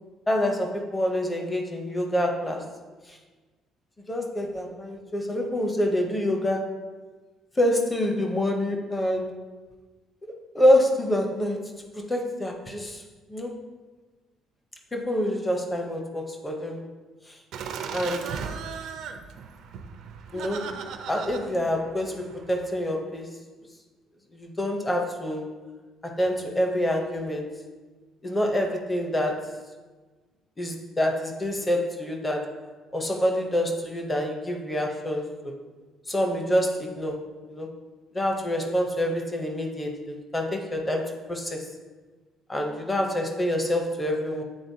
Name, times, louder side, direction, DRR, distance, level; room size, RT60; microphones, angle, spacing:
voice 1, 0.3-2.7 3.1-3.2 4.1-6.7 7.6-9.3 10.5-11.7 12.1-13.0 13.3-13.6 14.9-16.8 17.3-17.4 17.9-18.3 20.3-20.7 21.1-23.4 24.3-25.6 26.0-27.5 28.2-29.6 30.6-32.6 32.9-35.5 36.1-37.7 38.1-41.7 42.5-44.4, left 1 dB, 10° left, 2 dB, 0.6 m, -26 dB
Laughter, 17.5-22.7, right 6 dB, 60° right, 0.5 m, -37 dB
9.5 x 3.9 x 2.7 m, 1.3 s
cardioid pair, 170°, 0 cm